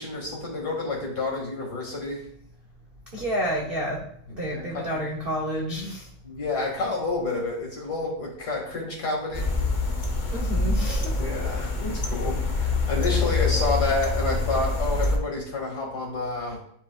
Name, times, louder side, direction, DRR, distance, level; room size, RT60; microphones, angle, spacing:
voice 1, 0.0-2.3 4.5-4.9 6.2-9.5 11.2-16.6, left 3 dB, 50° left, -1 dB, 2.4 m, -29 dB
voice 2, 3.1-6.1 10.3-11.2 16.5-16.6, equal, 50° right, -1 dB, 0.7 m, -30 dB
sound 1, 9.3-15.2, left 3 dB, 90° left, 0.4 m, -25 dB
10.5 x 4.9 x 2.3 m, 0.68 s
omnidirectional pair, 2.2 m